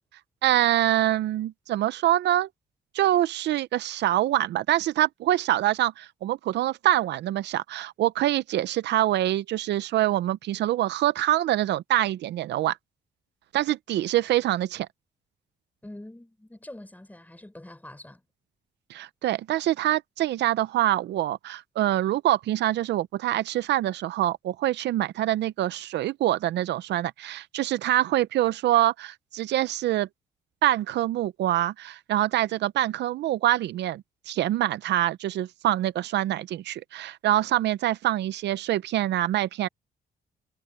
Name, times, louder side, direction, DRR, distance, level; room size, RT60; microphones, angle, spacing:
voice 1, 0.4-2.5 2.9-12.8 13.5-14.9 18.9-30.1 30.6-39.7, right 13 dB, 85° right, 0.5 m, -25 dB
voice 2, 15.8-18.2, left 1 dB, 10° left, 5.9 m, -44 dB
cardioid pair, 100°, 18 cm